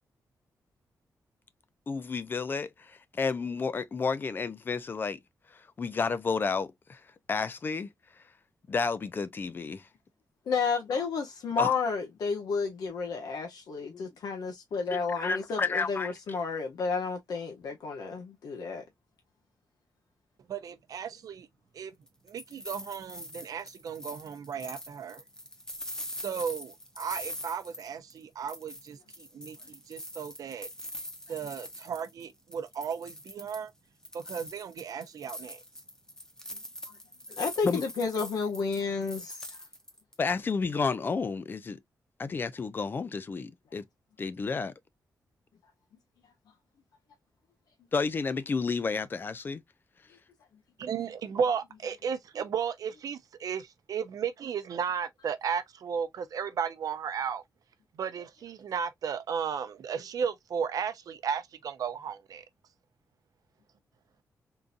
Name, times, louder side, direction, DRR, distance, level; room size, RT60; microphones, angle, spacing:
voice 1, 1.9-5.2 5.8-7.0 7.3-7.9 8.7-9.8 11.6-11.7 13.9-14.0 14.9-16.1 37.6-37.8 40.2-41.8 42.2-43.8 44.2-44.7 47.9-49.6, left 4 dB, 30° left, 0.4 m, -31 dB
voice 2, 10.5-18.8 37.3-39.6, left 5 dB, 80° left, 0.8 m, -31 dB
voice 3, 20.5-21.5 21.7-21.9 22.2-25.2 26.2-30.7 31.3-33.7 34.1-35.6 50.8-57.4 57.9-62.4, right 7 dB, 70° right, 0.6 m, -34 dB
sound 1, 22.1-28.2 28.5-32.2 32.5-33.7 34.0-40.1, left 1 dB, 10° left, 0.8 m, -43 dB
3.8 x 2.6 x 2.4 m
wide cardioid pair, 160°, 7 cm